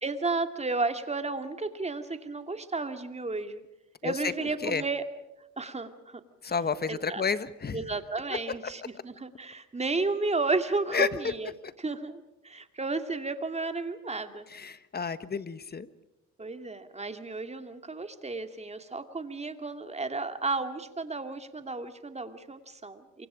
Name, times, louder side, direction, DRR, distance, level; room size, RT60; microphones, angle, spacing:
voice 1, 0.0-3.6 4.0-5.0 5.6-6.2 6.9-7.2 7.7-11.5 11.8-14.5 16.4-23.3, right 3 dB, 20° right, 8 dB, 2.4 m, -33 dB
voice 2, 6.4-7.8 10.9-11.3 14.5-15.9, left 5 dB, 30° left, 13 dB, 1.4 m, -30 dB
28.0 x 24.5 x 5.1 m, 0.96 s
cardioid pair, 90°, 30 cm